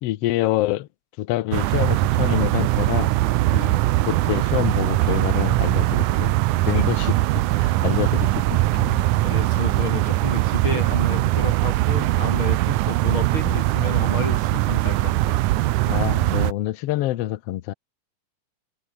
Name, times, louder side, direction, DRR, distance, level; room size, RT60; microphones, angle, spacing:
voice 1, 0.0-0.9 1.2-3.1 4.0-6.3 6.6-7.1 7.6-9.1 13.4-13.6 15.9-17.7, left 15 dB, 80° left, 1.4 m, -26 dB
sound 1, 1.5-16.5, right 17 dB, 75° right, 2.1 m, -21 dB
voice 2, 3.5-3.9 6.6-6.9 9.2-15.4, left 4 dB, 40° left, 3.1 m, -31 dB
omnidirectional pair, 3.8 m